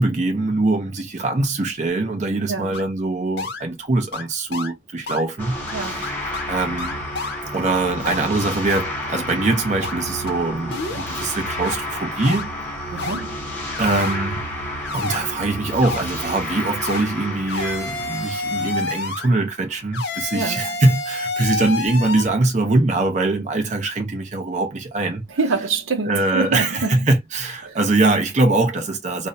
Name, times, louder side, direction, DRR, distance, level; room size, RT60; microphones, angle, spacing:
voice 1, 0.0-6.2 6.5-7.0 7.5-13.1 13.8-14.5 14.9-25.2 26.1-29.3, right 2 dB, 35° right, 0.5 m, -22 dB
voice 2, 2.5-2.8 5.7-6.1 12.9-13.5 20.3-20.7 25.3-27.0 27.6-27.8, right 4 dB, 80° right, 0.6 m, -26 dB
sound 1, 2.7-2.8 3.4-3.6 4.1-4.3 4.5-4.7 5.1-5.2 5.7-5.8 6.0-6.5 6.8-7.4 8.1-8.2 8.7-8.8 9.3-9.4 9.8-9.9 10.3-10.4 10.7-11.1 11.6-11.7 12.2-12.5 13.0-13.2 13.7-14.2 14.8-15.2 15.8-16.0 16.8-17.1 17.5-19.3 19.9-22.2, left 3 dB, 55° left, 0.6 m, -28 dB
sound 2, 5.4-19.7, left 1 dB, 10° left, 0.8 m, -31 dB
2.4 x 2.0 x 2.5 m
head